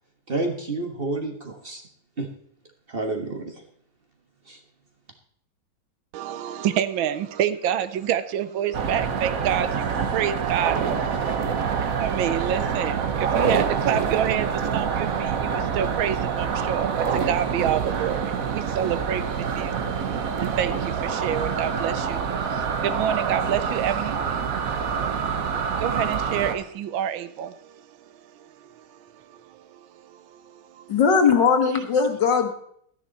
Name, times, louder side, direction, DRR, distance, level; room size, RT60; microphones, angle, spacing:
voice 1, 0.3-1.8 2.2-2.3 2.9-3.6 4.5-4.6, right 2 dB, 30° right, 3 dB, 1.3 m, -29 dB
voice 2, 6.1-31.0, right 10 dB, 80° right, 13 dB, 1.4 m, -29 dB
sound 1, 8.7-26.5, right 6 dB, 50° right, 1.2 m, -26 dB
voice 3, 30.9-32.5, left 6 dB, 60° left, 5 dB, 2.0 m, -19 dB
13.0 x 10.0 x 4.1 m, 0.65 s
omnidirectional pair, 2.2 m